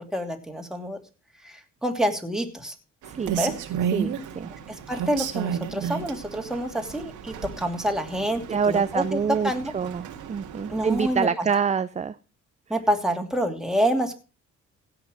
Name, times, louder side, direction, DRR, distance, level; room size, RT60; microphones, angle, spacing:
voice 1, 0.1-1.0 1.4-2.7 3.3-3.5 4.7-9.2 9.4-9.7 10.7-11.5 12.7-14.1, equal, ahead, 3 dB, 2.8 m, -27 dB
voice 2, 3.0-3.4 3.9-4.5 8.5-12.2, right 6 dB, 25° right, 13 dB, 0.5 m, -26 dB
Rain, 3.0-11.2, right 8 dB, 85° right, 1.9 m, -33 dB
16.5 x 5.9 x 6.4 m, 0.33 s
cardioid pair, 90°, 30 cm